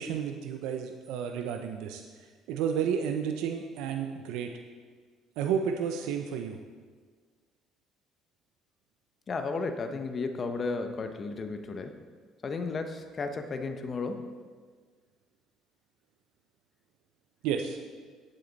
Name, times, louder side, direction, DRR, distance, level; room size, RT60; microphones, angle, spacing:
voice 1, 0.0-2.0 2.5-4.5 5.4-6.6 17.4-17.8, right 7 dB, 85° right, 5 dB, 0.6 m, -31 dB
voice 2, 9.3-12.0 12.4-14.3, left 4 dB, 35° left, 7 dB, 0.9 m, -33 dB
10.0 x 8.4 x 4.0 m, 1.5 s
cardioid pair, 110°, 0 cm